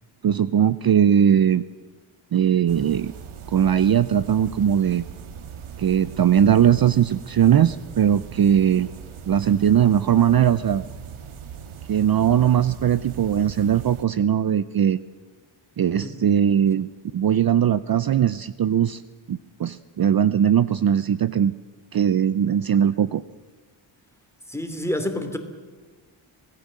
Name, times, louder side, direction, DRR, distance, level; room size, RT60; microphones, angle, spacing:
voice 1, 0.2-1.6 2.3-3.1 3.5-5.0 5.8-8.9 9.3-10.8 11.9-15.0 15.8-19.0 19.3-21.5 21.9-23.2, right 9 dB, 50° right, 15 dB, 0.6 m, -20 dB
sound 1, 2.7-14.1, right 7 dB, 90° right, 1.6 m, -40 dB
voice 2, 16.0-16.3 24.5-25.4, left 1 dB, 5° left, 6 dB, 2.9 m, -28 dB
26.0 x 18.5 x 7.5 m, 1.4 s
wide cardioid pair, 120°, 48 cm